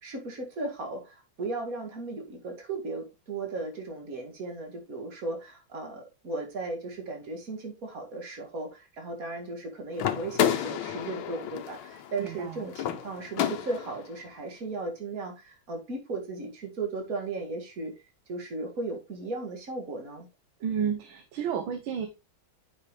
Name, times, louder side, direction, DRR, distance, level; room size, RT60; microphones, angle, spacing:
voice 1, 0.0-17.9 18.3-20.3, right 3 dB, 45° right, 2.2 m, -36 dB
sound 1, 10.0-14.1, left 10 dB, 80° left, 1.7 m, -31 dB
voice 2, 12.2-12.7 20.6-22.1, right 7 dB, 75° right, 1.7 m, -31 dB
8.8 x 5.7 x 3.2 m
omnidirectional pair, 2.2 m